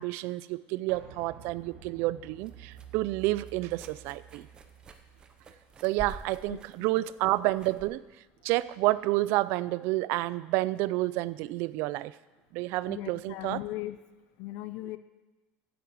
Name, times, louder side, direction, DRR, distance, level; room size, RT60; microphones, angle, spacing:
voice 1, 0.0-4.5 5.8-8.0 8.4-12.1 12.5-13.6, right 18 dB, 55° right, 18 dB, 0.4 m, -29 dB
sound 1, 0.9-6.5 6.8-6.9, right 9 dB, 90° right, 1.7 m, -51 dB
sound 2, 2.3-9.4, right 4 dB, 20° right, 0.7 m, -50 dB
voice 2, 12.9-14.0 14.4-15.0, left 16 dB, 55° left, 12 dB, 0.4 m, -38 dB
8.8 x 7.9 x 8.1 m, 1.1 s
cardioid pair, 170°, 5 cm